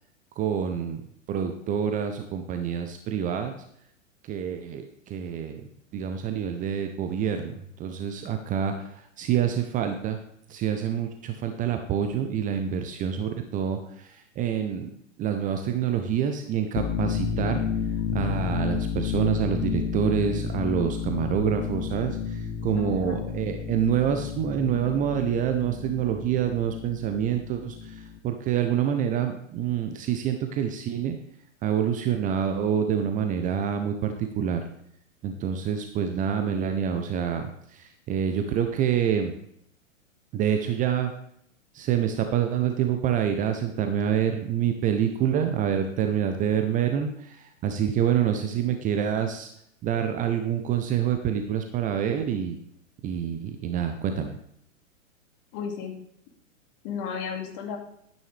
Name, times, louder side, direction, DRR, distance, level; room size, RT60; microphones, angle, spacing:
voice 1, 0.4-1.0 1.3-3.6 4.2-5.6 5.9-7.5 7.8-10.2 10.5-14.9 15.2-17.6 18.1-31.2 31.6-34.6 35.2-39.3 40.3-41.1 41.7-49.5 49.8-52.6 53.0-54.3, right 8 dB, 20° right, 6 dB, 0.7 m, -27 dB
sound 1, 16.6-28.2, left 7 dB, 25° left, 0.7 m, -31 dB
voice 2, 22.7-23.3 55.5-56.0 56.8-57.8, left 6 dB, 40° left, 2 dB, 2.5 m, -34 dB
12.5 x 9.1 x 3.4 m, 0.73 s
figure-of-eight pair, 115°, 41 cm